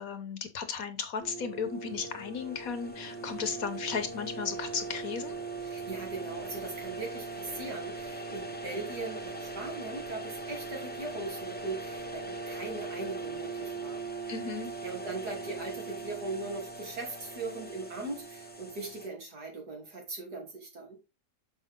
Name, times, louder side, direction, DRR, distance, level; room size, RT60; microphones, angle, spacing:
voice 1, 0.0-5.4 14.3-14.7, left 6 dB, 60° left, 1.3 m, -35 dB
sound 1, 1.2-19.1, right 3 dB, 10° left, 0.7 m, -40 dB
voice 2, 5.6-14.0 14.8-21.0, right 3 dB, 65° right, 3.5 m, -39 dB
6.8 x 5.5 x 3.6 m
omnidirectional pair, 1.8 m